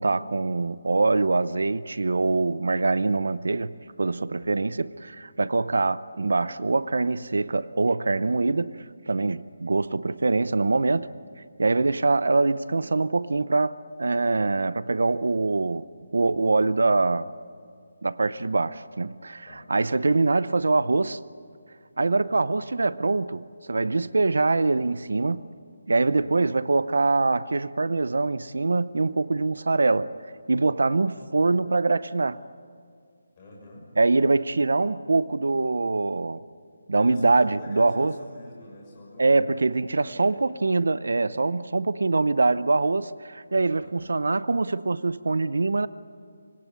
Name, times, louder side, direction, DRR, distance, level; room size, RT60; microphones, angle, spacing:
voice 1, 0.0-8.8 9.1-11.1 11.6-15.9 16.1-17.3 18.0-21.2 22.0-25.5 25.9-30.1 30.5-32.4 34.0-36.4 36.9-38.2 39.2-45.9, right 3 dB, 75° right, 0.7 m, -24 dB
voice 2, 4.4-4.8 11.7-12.0 19.5-19.6 19.9-20.1 22.0-22.3 26.0-26.3 31.1-31.4 33.4-33.9 36.9-39.3 39.9-40.4 43.8-44.1, left 1 dB, 20° left, 6.4 m, -47 dB
25.5 x 21.5 x 9.5 m
hypercardioid pair, 180°, 0 cm